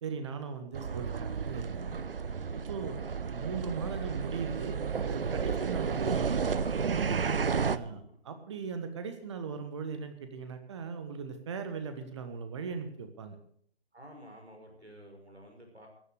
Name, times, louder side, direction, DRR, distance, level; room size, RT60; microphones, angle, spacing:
voice 1, 0.0-2.0 2.5-6.7 7.7-13.4, right 5 dB, 25° right, 8 dB, 1.5 m, -39 dB
sound 1, 0.7-7.8, right 6 dB, 60° right, 0.7 m, -32 dB
voice 2, 7.4-8.2 13.9-15.9, equal, 85° right, 2 dB, 5.9 m, -52 dB
15.0 x 9.8 x 6.5 m, 0.62 s
figure-of-eight pair, 145°, 32 cm